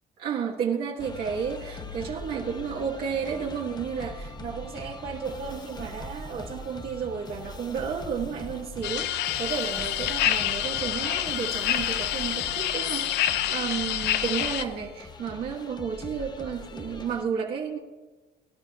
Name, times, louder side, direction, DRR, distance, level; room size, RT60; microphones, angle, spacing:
voice 1, 0.2-17.8, right 7 dB, 65° right, -3 dB, 2.0 m, -32 dB
sound 1, 1.0-17.2, left 2 dB, 25° left, 0.9 m, -41 dB
sound 2, 8.8-14.6, left 12 dB, 85° left, 0.6 m, -27 dB
23.5 x 11.5 x 2.5 m, 1.2 s
cardioid pair, 110°, 17 cm